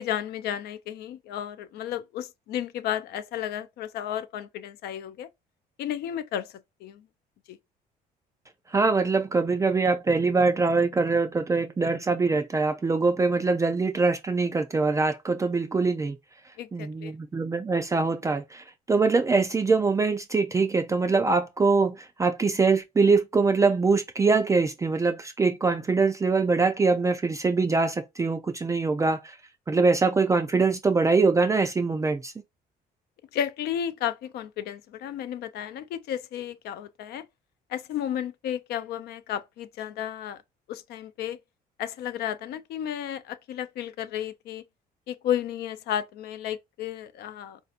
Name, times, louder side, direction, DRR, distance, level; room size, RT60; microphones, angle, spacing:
voice 1, 0.0-5.3 5.8-6.5 6.8-7.1 7.5-7.6 16.6-17.1 33.3-37.3 37.7-40.4 40.7-41.4 41.8-44.6 45.1-47.6, left 10 dB, 70° left, 0.4 m, -33 dB
voice 2, 8.7-16.2 16.7-29.3 29.7-32.3, right 4 dB, 20° right, 0.4 m, -23 dB
4.2 x 2.7 x 2.4 m
cardioid pair, 110°, 17 cm